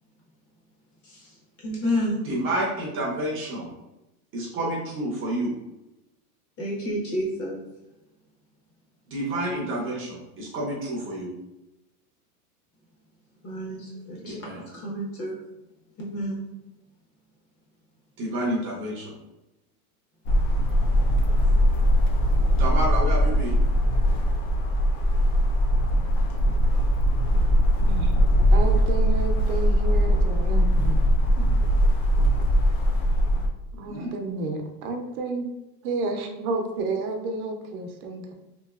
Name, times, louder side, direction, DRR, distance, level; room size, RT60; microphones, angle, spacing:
voice 1, 1.6-2.2 6.6-7.6 13.4-14.5 14.7-15.4 16.0-16.4, equal, 30° left, 1.0 m, -30 dB
voice 2, 2.2-3.7 4.3-5.5 9.1-11.3 14.2-14.6 18.2-19.1 22.6-23.5 33.9-34.1, right 1 dB, 30° right, 0.6 m, -29 dB
sound 1, 20.3-33.5, equal, 55° left, 0.6 m, -21 dB
voice 3, 27.8-28.2 28.5-31.0 31.4-31.5 33.8-35.5 35.8-38.3, right 3 dB, 70° right, 0.7 m, -31 dB
3.0 x 2.9 x 2.3 m
supercardioid pair, 145°, 46 cm